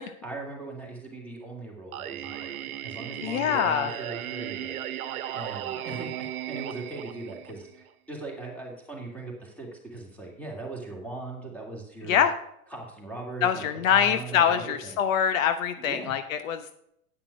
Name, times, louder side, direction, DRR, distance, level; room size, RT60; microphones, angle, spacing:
voice 1, 0.2-5.0 5.3-12.2 12.7-15.0 15.8-16.1, right 2 dB, 5° left, -1 dB, 2.8 m, -39 dB
Singing, 1.9-7.9, right 11 dB, 80° right, 1.1 m, -36 dB
voice 2, 3.2-3.9 12.0-12.3 13.4-16.7, left 8 dB, 65° left, 11 dB, 0.9 m, -24 dB
10.0 x 5.9 x 6.1 m, 0.75 s
supercardioid pair, 135°, 43 cm